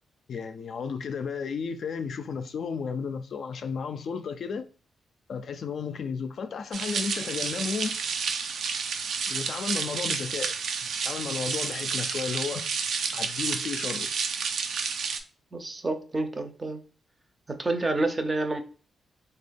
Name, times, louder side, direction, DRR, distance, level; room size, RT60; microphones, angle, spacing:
voice 1, 0.3-4.7 5.3-8.0 9.3-10.5 10.8-12.7 13.1-14.1, left 5 dB, 60° left, 0.3 m, -33 dB
sound 1, 6.7-15.2, right 5 dB, 75° right, 0.4 m, -30 dB
voice 2, 15.5-16.8 17.5-18.6, right 2 dB, 20° right, 0.5 m, -28 dB
3.4 x 2.3 x 3.3 m
cardioid pair, 125°, 0 cm